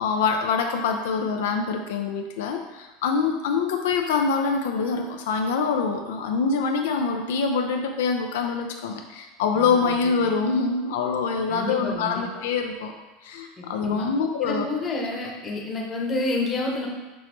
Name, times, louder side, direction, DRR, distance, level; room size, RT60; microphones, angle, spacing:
voice 1, 0.0-12.9 13.2-14.7, left 5 dB, 85° left, 4 dB, 0.4 m, -25 dB
voice 2, 9.5-10.0 11.5-12.3 13.6-14.1 14.4-16.9, left 2 dB, 25° left, -1 dB, 0.9 m, -29 dB
6.1 x 2.8 x 3.0 m, 1.1 s
supercardioid pair, 135°, 0 cm